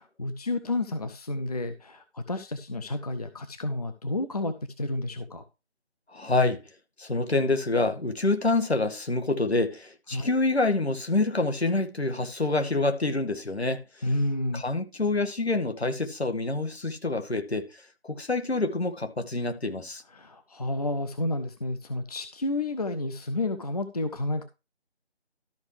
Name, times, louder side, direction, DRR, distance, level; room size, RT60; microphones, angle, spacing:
voice 1, 0.0-5.4 10.1-10.3 14.0-14.6 20.1-24.4, left 2 dB, 35° left, 0.8 m, -30 dB
voice 2, 6.1-6.6 7.0-14.1 14.5-17.7 18.0-20.0, left 2 dB, 70° left, 1.9 m, -27 dB
13.0 x 5.9 x 3.3 m
figure-of-eight pair, 160°, 33 cm